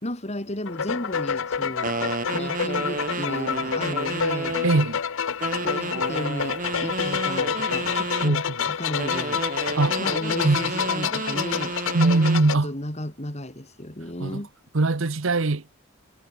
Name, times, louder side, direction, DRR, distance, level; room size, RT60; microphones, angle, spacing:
voice 1, 0.0-2.0 2.3-4.6 5.6-8.4 8.6-9.4 10.0-11.8 12.4-14.5, left 1 dB, 30° left, 3.0 m, -33 dB
sound 1, 0.7-12.6, left 7 dB, 60° left, 0.6 m, -28 dB
sound 2, 1.8-4.9 5.4-8.4 9.0-12.5, right 3 dB, 35° right, 1.3 m, -31 dB
voice 2, 4.6-5.0 8.2-8.4 9.8-10.0 10.4-10.7 11.9-12.7 14.2-14.4 14.7-15.7, right 2 dB, 60° right, 0.9 m, -21 dB
head